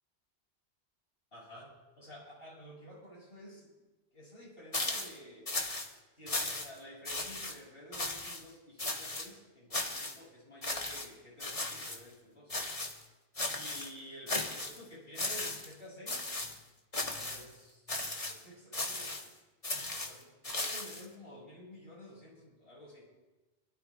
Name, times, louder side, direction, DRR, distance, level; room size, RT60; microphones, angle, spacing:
voice 1, 1.3-3.7 4.1-5.5 6.2-12.5 13.5-16.3 17.1-17.9 18.3-19.4 19.7-23.1, equal, 60° left, -6 dB, 6.6 m, -52 dB
sound 1, 4.7-5.2 5.5-5.9 6.3-6.8 7.0-7.5 7.9-8.4 8.8-9.3 9.7-10.2 10.6-11.1 11.4-12.0 12.5-13.0 13.4-13.9 14.3-14.8 15.1-15.7 16.1-16.6 16.9-17.4 17.9-18.4 18.7-19.3 19.6-21.0, left 2 dB, 30° left, 1.5 m, -36 dB
27.5 x 13.0 x 2.4 m, 1.1 s
omnidirectional pair, 1.2 m